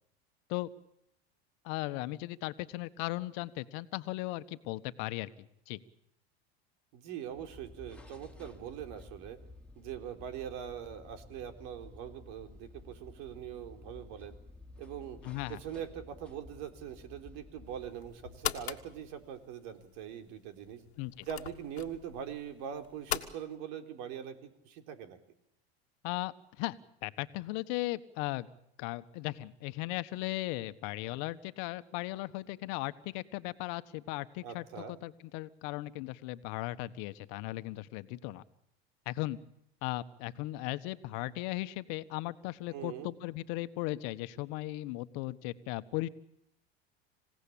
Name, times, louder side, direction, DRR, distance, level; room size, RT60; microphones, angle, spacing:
voice 1, 1.6-5.3 5.7-5.8 15.2-15.6 21.0-21.3 26.0-26.7 27.0-28.5 28.8-38.4 39.0-39.4 39.8-46.1, left 18 dB, 60° left, 12 dB, 1.5 m, -37 dB
voice 2, 6.9-9.4 9.8-14.3 14.8-15.2 15.5-20.8 21.3-25.2 34.4-35.0 42.7-43.2, right 9 dB, 65° right, 7 dB, 3.8 m, -42 dB
sound 1, 7.3-19.4, left 2 dB, 5° left, 3.2 m, -53 dB
sound 2, 17.7-23.3, left 11 dB, 90° left, 1.7 m, -41 dB
27.0 x 17.0 x 8.7 m, 0.78 s
hypercardioid pair, 95°, 31 cm